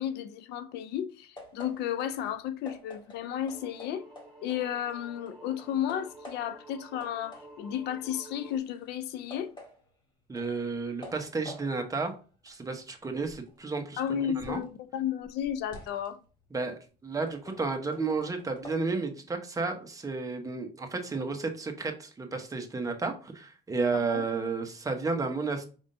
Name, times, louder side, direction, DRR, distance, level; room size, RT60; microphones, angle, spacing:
voice 1, 0.0-4.0 4.4-9.5 14.0-16.2 23.9-24.2, left 10 dB, 80° left, 0.5 m, -33 dB
sound 1, 1.4-5.0 5.3-6.7 7.0-14.7 15.1-18.8, left 1 dB, 25° left, 1.6 m, -50 dB
sound 2, 3.4-8.6, right 2 dB, 5° left, 1.4 m, -51 dB
voice 2, 10.3-12.1 12.4-14.0 14.4-14.6 16.5-25.7, right 4 dB, 20° right, 0.9 m, -32 dB
5.3 x 3.5 x 2.6 m
cardioid pair, 110°, 17 cm